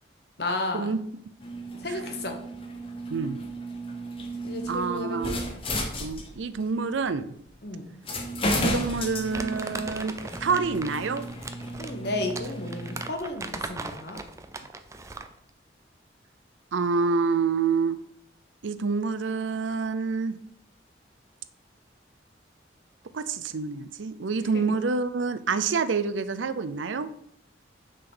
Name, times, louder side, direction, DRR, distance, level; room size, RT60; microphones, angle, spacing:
voice 1, 0.4-1.0 1.8-2.4 4.4-5.4 7.6-8.0 11.8-14.2 24.5-24.8, left 2 dB, 60° left, 5 dB, 1.1 m, -33 dB
sound 1, 1.4-6.6 7.5-7.6 8.0-13.1, equal, 30° left, 1.0 m, -33 dB
voice 2, 4.7-5.4 6.0-7.3 8.6-10.1 10.4-11.3 16.7-18.0 18.6-20.4 23.1-27.1, right 4 dB, 85° right, 13 dB, 0.5 m, -27 dB
Crumpling crinkling, 9.3-15.4, right 3 dB, 15° right, 0.4 m, -39 dB
6.4 x 3.9 x 6.1 m, 0.69 s
head